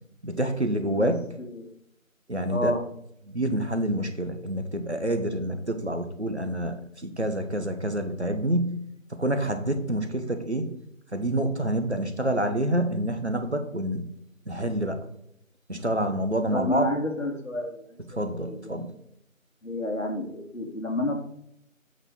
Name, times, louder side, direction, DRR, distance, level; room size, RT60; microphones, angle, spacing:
voice 1, 0.2-1.2 2.3-2.7 3.3-8.8 9.1-10.7 11.1-14.0 14.5-15.0 15.7-16.9 18.2-18.9, right 1 dB, 55° right, 7 dB, 1.1 m, -27 dB
voice 2, 2.5-2.8 16.5-17.8 18.3-18.9 19.6-21.1, left 1 dB, 65° left, 3 dB, 1.8 m, -30 dB
8.5 x 5.2 x 3.7 m, 0.74 s
figure-of-eight pair, 180°, 41 cm